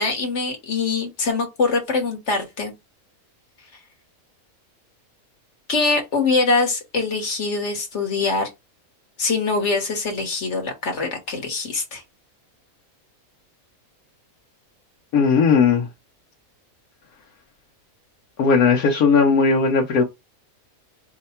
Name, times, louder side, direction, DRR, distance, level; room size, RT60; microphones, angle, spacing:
voice 1, 0.0-2.7 5.7-8.5 9.2-12.0, left 3 dB, 55° left, 1.5 m, -23 dB
voice 2, 15.1-15.9 18.4-20.0, left 5 dB, 80° left, 1.2 m, -17 dB
4.6 x 2.2 x 4.2 m
omnidirectional pair, 1.5 m